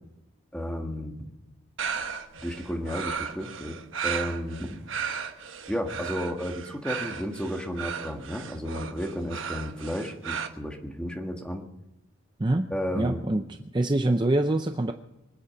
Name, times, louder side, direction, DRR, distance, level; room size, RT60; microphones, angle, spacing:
voice 1, 0.5-1.3 2.4-4.8 5.7-11.6 12.7-13.2, equal, 5° left, 2 dB, 1.7 m, -33 dB
sound 1, 1.8-10.5, right 7 dB, 70° right, 1.1 m, -35 dB
voice 2, 13.0-13.4 13.7-14.9, right 1 dB, 20° right, 7 dB, 0.5 m, -24 dB
24.0 x 8.6 x 6.6 m, 0.94 s
head